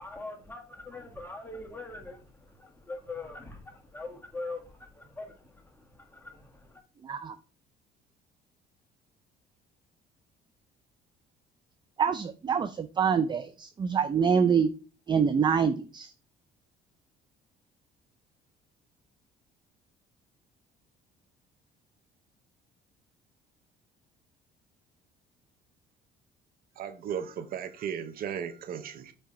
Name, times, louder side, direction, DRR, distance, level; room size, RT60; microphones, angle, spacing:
voice 1, 0.0-6.8, left 2 dB, 10° left, 1.6 m, -42 dB
voice 2, 7.0-7.4 12.0-14.7 15.1-16.1, right 6 dB, 25° right, 0.4 m, -26 dB
voice 3, 26.8-29.1, right 8 dB, 60° right, 0.7 m, -36 dB
7.4 x 3.4 x 4.2 m
cardioid pair, 110°, 17 cm